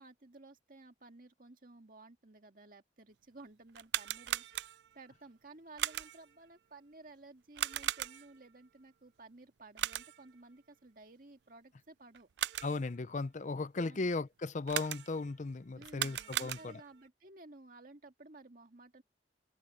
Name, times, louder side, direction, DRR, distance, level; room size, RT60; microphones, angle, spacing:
voice 1, 0.0-12.3 13.8-14.2 15.7-19.0, right 2 dB, 50° right, 2.1 m, -55 dB
sound 1, 3.7-5.0 5.8-6.3 7.6-8.4 9.8-10.3 12.1-12.9 14.7-15.3 15.8-17.0, right 12 dB, 70° right, 0.4 m, -38 dB
voice 2, 12.6-16.8, left 3 dB, 40° left, 0.5 m, -36 dB
head